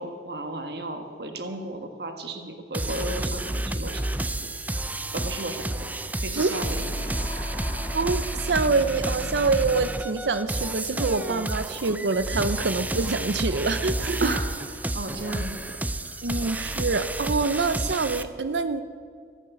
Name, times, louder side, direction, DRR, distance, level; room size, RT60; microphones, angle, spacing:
voice 1, 0.0-4.5 5.1-7.2 14.2-16.5, right 2 dB, 65° right, 6 dB, 1.5 m, -35 dB
sound 1, 2.7-18.2, right 1 dB, 10° right, 0.5 m, -30 dB
sound 2, 6.7-10.5, left 2 dB, 20° left, 2.0 m, -45 dB
voice 2, 7.9-14.3 16.2-18.8, right 4 dB, 85° right, 12 dB, 0.6 m, -25 dB
14.0 x 12.0 x 8.2 m, 2.1 s
head